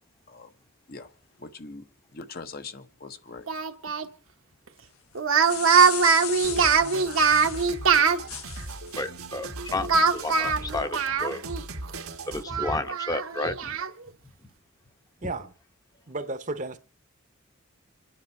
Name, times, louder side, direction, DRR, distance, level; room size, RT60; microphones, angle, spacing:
voice 1, 1.4-1.8 2.1-3.5, left 4 dB, 45° left, 0.9 m, -41 dB
Speech, 3.5-4.1 5.2-8.2 9.9-11.6 11.9-12.0 12.5-13.9, right 5 dB, 70° right, 1.2 m, -22 dB
sound 1, 5.2-7.7 8.3-8.9, left 10 dB, 80° left, 1.3 m, -36 dB
sound 2, 6.4-12.4, right 3 dB, 85° right, 1.6 m, -38 dB
voice 2, 9.0-11.4 12.3-13.8 15.2-15.3, left 2 dB, 15° left, 0.9 m, -32 dB
voice 3, 15.2-15.5 16.1-16.8, right 2 dB, 35° right, 0.9 m, -33 dB
27.5 x 9.8 x 4.5 m
head